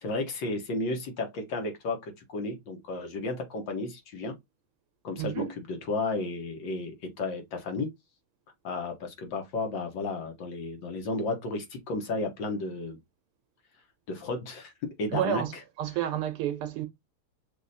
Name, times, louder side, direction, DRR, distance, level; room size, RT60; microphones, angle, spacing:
voice 1, 0.0-4.3 5.0-7.9 8.6-13.0 14.1-14.7 15.0-15.4, left 3 dB, 60° left, 1.8 m, -33 dB
voice 2, 5.2-5.5 15.1-16.9, right 11 dB, 85° right, 1.8 m, -30 dB
6.4 x 2.7 x 2.7 m
omnidirectional pair, 2.4 m